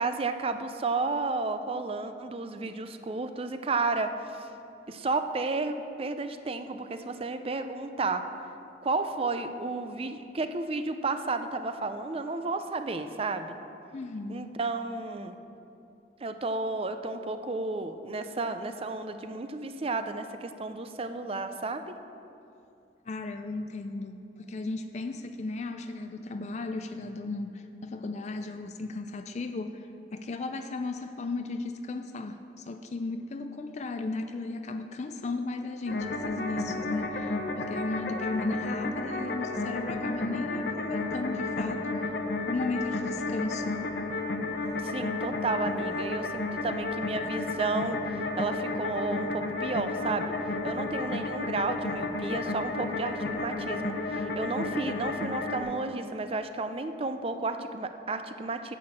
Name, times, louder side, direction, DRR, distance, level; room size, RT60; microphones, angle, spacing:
voice 1, 0.0-4.5 4.9-8.2 8.8-13.5 14.3-15.4 16.2-22.0 44.8-48.0 48.4-50.4 50.6-58.8, right 3 dB, 35° right, 9 dB, 0.5 m, -32 dB
voice 2, 13.9-14.5 23.1-42.1 42.5-43.8, left 3 dB, 40° left, 7 dB, 0.4 m, -35 dB
sound 1, 35.9-55.6, left 3 dB, 60° left, 1.0 m, -32 dB
9.8 x 6.6 x 7.3 m, 2.7 s
head